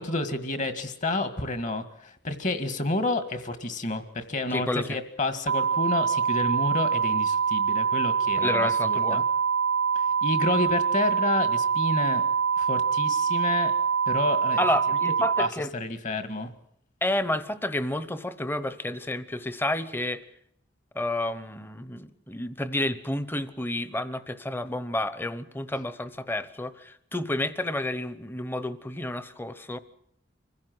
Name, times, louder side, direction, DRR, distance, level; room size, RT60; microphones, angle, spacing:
voice 1, 0.0-9.2 10.0-12.2 12.6-13.7 14.1-15.0 15.4-16.5, left 2 dB, 45° left, 10 dB, 1.9 m, -30 dB
voice 2, 4.5-5.0 8.4-9.2 14.6-15.7 17.0-20.2 20.9-29.8, left 1 dB, 10° left, 14 dB, 1.0 m, -30 dB
sound 1, 5.5-15.5, right 6 dB, 70° right, 0.8 m, -25 dB
25.5 x 16.0 x 8.0 m, 0.72 s
head